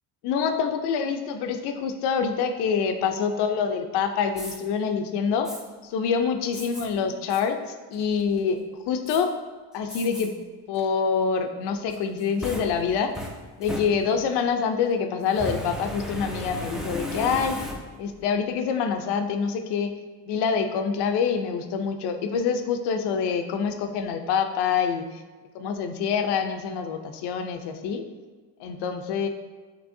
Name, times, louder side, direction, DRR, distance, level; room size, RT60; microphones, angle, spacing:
voice 1, 0.2-5.5 5.8-8.6 8.9-9.3 9.7-10.4 10.7-13.1 13.6-17.6 18.0-19.9 20.3-25.2 25.5-28.0 28.6-29.3, left 6 dB, 80° left, 7 dB, 0.6 m, -26 dB
Fire, 4.3-4.6 5.4-5.6 6.5-6.9 7.3-7.4 7.9-8.4 9.1-9.2 9.9-10.3 10.7-10.8 11.9-14.4 15.3-18.1, left 1 dB, ahead, 0.4 m, -35 dB
6.1 x 3.0 x 2.6 m, 1.4 s
cardioid pair, 110°, 39 cm